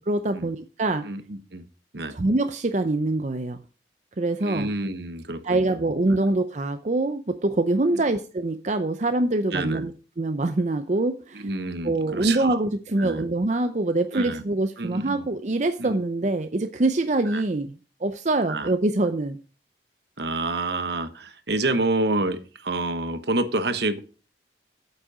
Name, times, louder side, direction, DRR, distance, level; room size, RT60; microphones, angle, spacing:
voice 1, 0.1-1.0 2.1-3.6 4.2-4.7 5.4-9.9 10.2-11.5 11.8-17.7 18.0-19.4, right 2 dB, 40° right, 8 dB, 0.6 m, -24 dB
voice 2, 1.0-1.6 1.9-2.2 4.4-5.8 6.1-6.3 7.9-8.1 9.5-9.9 11.3-12.6 13.0-13.2 14.1-14.4 14.8-15.3 15.8-16.0 17.3-17.4 18.5-18.7 20.2-24.0, right 2 dB, 65° right, 10 dB, 1.1 m, -28 dB
8.7 x 8.2 x 4.9 m, 0.37 s
head